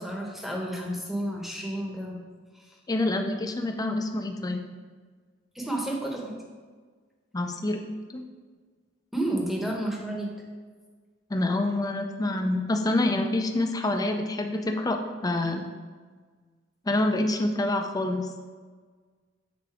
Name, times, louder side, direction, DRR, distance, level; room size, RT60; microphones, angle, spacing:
voice 1, 0.0-2.2 2.5-2.6 5.5-6.4 9.1-10.3, right 1 dB, ahead, -1 dB, 1.0 m, -31 dB
voice 2, 2.9-4.6 7.3-7.8 8.1-8.2 11.3-15.7 16.9-18.3, left 2 dB, 20° left, 4 dB, 0.5 m, -27 dB
6.8 x 3.9 x 4.7 m, 1.5 s
head